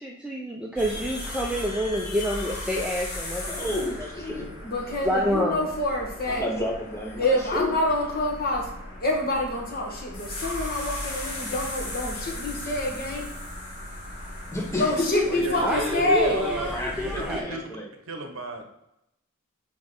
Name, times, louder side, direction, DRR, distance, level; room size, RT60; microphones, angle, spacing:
voice 1, 0.0-3.5 4.0-4.6 5.0-5.7 15.6-17.5, equal, 5° right, 0.6 m, -28 dB
sound 1, 0.8-17.4, left 1 dB, 75° left, 2.4 m, -37 dB
voice 2, 3.4-4.5 6.3-7.7 10.9-11.0 12.5-12.8 14.5-15.6 16.7-17.9, left 2 dB, 15° left, 1.3 m, -31 dB
voice 3, 4.6-6.5 7.2-8.6 9.0-13.3 14.8-16.5, left 1 dB, 45° left, 1.7 m, -27 dB
voice 4, 15.3-16.8 17.0-17.6 18.1-18.6, right 2 dB, 65° right, 1.0 m, -33 dB
6.1 x 4.9 x 3.8 m
head